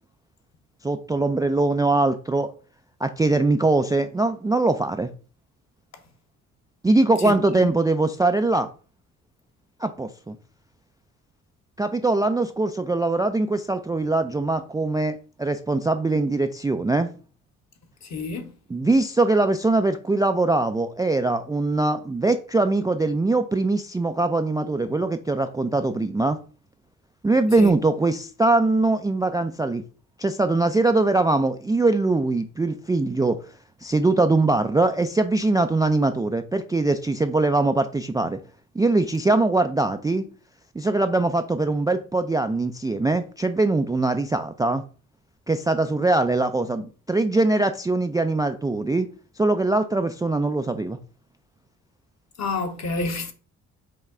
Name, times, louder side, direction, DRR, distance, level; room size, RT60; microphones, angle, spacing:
voice 1, 0.8-2.5 3.0-5.1 6.8-8.7 9.8-10.4 11.8-17.1 18.7-26.4 27.2-29.8 30.2-33.4 33.8-38.4 38.8-40.2 40.8-44.8 45.5-49.1 49.4-51.0, right 2 dB, 10° right, 0.3 m, -22 dB
voice 2, 7.2-7.7 18.0-18.5 27.6-27.7 52.4-53.3, left 3 dB, 45° left, 1.1 m, -29 dB
5.5 x 2.2 x 3.7 m
supercardioid pair, 55°, 37 cm